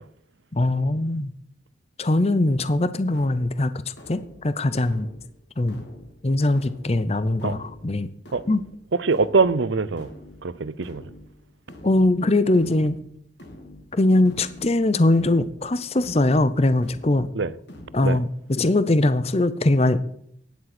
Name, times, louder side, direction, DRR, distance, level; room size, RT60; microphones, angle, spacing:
voice 1, 0.5-1.3 2.0-5.1 5.6-5.8 6.2-8.1 8.5-8.6 11.8-13.0 13.9-17.3 17.9-20.0, left 2 dB, 30° left, 0.6 m, -21 dB
sound 1, 3.1-18.1, left 1 dB, 60° left, 3.0 m, -47 dB
voice 2, 9.0-10.1 10.4-11.0 17.4-17.5 18.0-18.2, right 4 dB, 70° right, 0.7 m, -22 dB
15.5 x 10.5 x 6.0 m
head